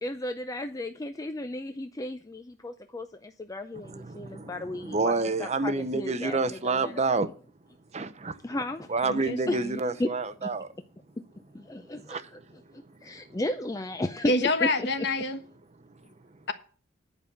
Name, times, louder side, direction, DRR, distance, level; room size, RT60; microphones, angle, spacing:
voice 1, 0.0-5.1 5.4-6.9 8.4-8.9 9.5-9.6 10.0-10.1 11.5-12.2 12.7-14.9, left 1 dB, 20° left, 0.5 m, -34 dB
voice 2, 3.7-7.3 7.6-8.4 8.9-10.7 11.7-13.4 15.7-16.5, right 3 dB, 35° right, 0.8 m, -30 dB
voice 3, 9.1-9.8 14.3-15.4, left 2 dB, 65° left, 1.3 m, -27 dB
10.0 x 5.4 x 8.3 m
head